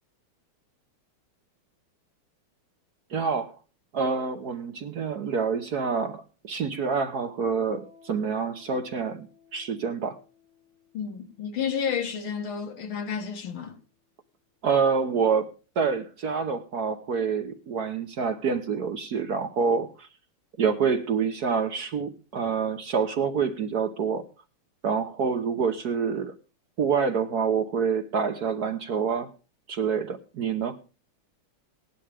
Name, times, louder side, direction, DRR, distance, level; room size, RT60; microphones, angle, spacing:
voice 1, 3.1-3.6 3.9-9.3 9.5-10.2 14.6-15.5 15.8-20.1 20.6-24.3 24.8-26.4 26.8-29.3 29.7-30.8, right 6 dB, 55° right, 1.3 m, -27 dB
Piano, 7.7-14.9, left 6 dB, 15° left, 2.3 m, -60 dB
voice 2, 10.9-13.8, left 7 dB, 70° left, 2.3 m, -31 dB
17.5 x 11.0 x 3.4 m
omnidirectional pair, 2.4 m